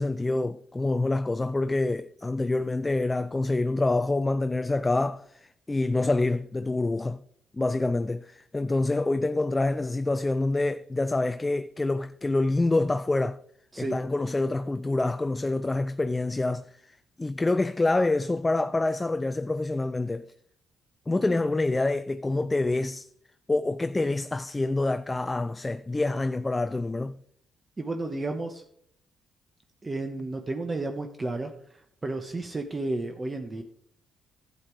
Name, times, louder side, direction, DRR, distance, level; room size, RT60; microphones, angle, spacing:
voice 1, 0.0-7.2 7.5-13.4 13.8-20.3 21.1-23.1 23.5-27.2, left 2 dB, 20° left, 0.4 m, -26 dB
voice 2, 27.8-28.6 29.8-31.5 32.0-33.6, right 2 dB, 25° right, 1.2 m, -32 dB
11.5 x 8.2 x 4.7 m
cardioid pair, 90°, 0 cm